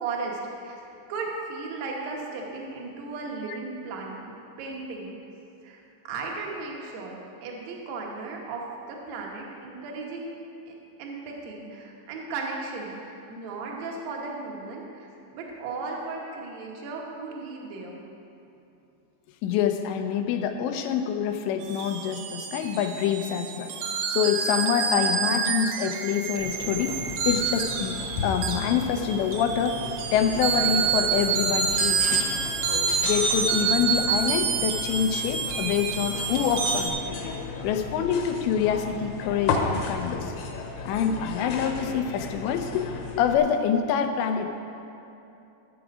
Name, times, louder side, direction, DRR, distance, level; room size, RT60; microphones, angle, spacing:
voice 1, 0.0-0.8 1.1-5.2 5.6-5.8 6.1-10.3 10.7-10.8 11.0-15.1 15.3-18.0, right 3 dB, 70° right, -1 dB, 1.7 m, -36 dB
voice 2, 19.4-23.7 24.1-27.0 27.3-29.8 30.1-32.3 33.0-36.9 37.6-40.3 40.8-42.9 43.2-44.5, left 8 dB, 90° left, 6 dB, 3.0 m, -26 dB
sound 1, 21.6-36.9, right 6 dB, 85° right, 3.0 m, -28 dB
sound 2, 26.4-43.4, left 4 dB, 75° left, 2.7 m, -34 dB
13.5 x 7.1 x 4.9 m, 2.9 s
omnidirectional pair, 5.0 m